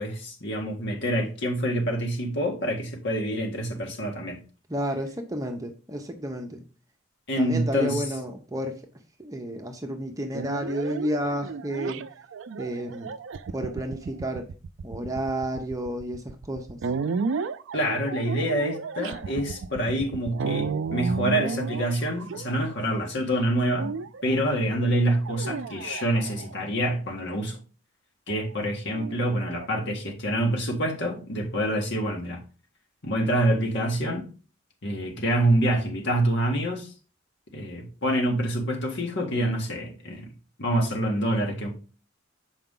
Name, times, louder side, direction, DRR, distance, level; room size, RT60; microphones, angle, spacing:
voice 1, 0.0-4.4 7.3-8.0 17.7-23.9 24.2-27.6 28.3-32.4 33.0-34.2 34.8-36.9 37.5-40.3 40.6-41.7, right 1 dB, 65° left, 1.8 m, -26 dB
voice 2, 4.7-6.6 7.4-8.8 9.2-12.0 12.6-13.1 13.5-14.5 14.8-16.8, right 1 dB, 15° right, 0.8 m, -31 dB
sound 1, 10.3-23.0 23.8-24.4 25.2-26.7 28.3-29.7, right 5 dB, 70° right, 0.4 m, -33 dB
6.8 x 4.9 x 3.8 m
head